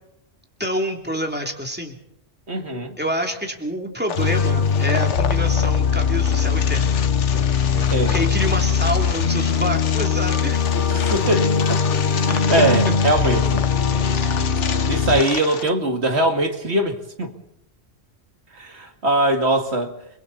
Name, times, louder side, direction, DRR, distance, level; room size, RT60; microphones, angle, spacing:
voice 1, 0.6-2.0 3.0-7.0 7.3-10.6 12.3-12.9, equal, 10° right, 2 dB, 2.9 m, -27 dB
voice 2, 2.5-2.9 7.7-8.3 10.7-11.8 12.5-13.6 14.8-17.3 18.5-19.9, right 1 dB, 70° right, 5 dB, 2.4 m, -22 dB
sound 1, 4.1-15.7, left 7 dB, 85° left, 1.3 m, -31 dB
sound 2, 4.2-15.2, left 6 dB, 50° left, 1.2 m, -20 dB
29.5 x 22.0 x 4.2 m, 0.78 s
omnidirectional pair, 1.2 m